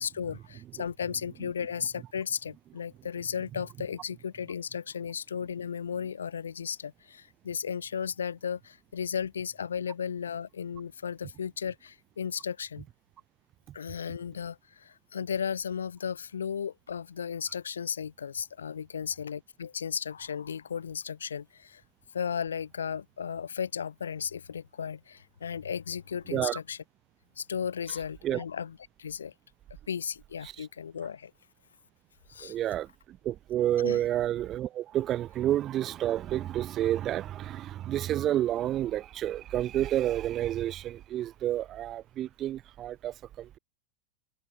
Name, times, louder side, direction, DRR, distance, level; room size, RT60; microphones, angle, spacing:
voice 1, 0.0-12.8 13.7-21.8 22.1-26.8 27.4-29.3 29.9-31.3 32.3-32.6 33.8-34.0, left 7 dB, 70° left, 0.4 m, -35 dB
voice 2, 32.4-43.6, right 12 dB, 30° right, 0.4 m, -30 dB
figure-of-eight pair, 90°, 0 cm